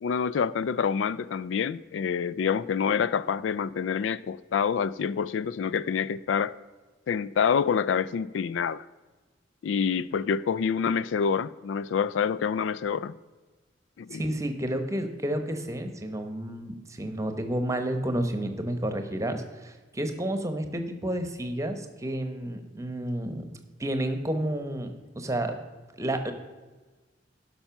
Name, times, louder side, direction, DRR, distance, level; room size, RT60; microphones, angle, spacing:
voice 1, 0.0-6.5 7.1-8.8 9.6-13.1 14.0-14.2, left 6 dB, 90° left, 0.3 m, -27 dB
voice 2, 14.1-23.4 23.8-25.6 26.0-26.3, right 1 dB, 15° right, 0.9 m, -30 dB
11.5 x 5.6 x 5.8 m
head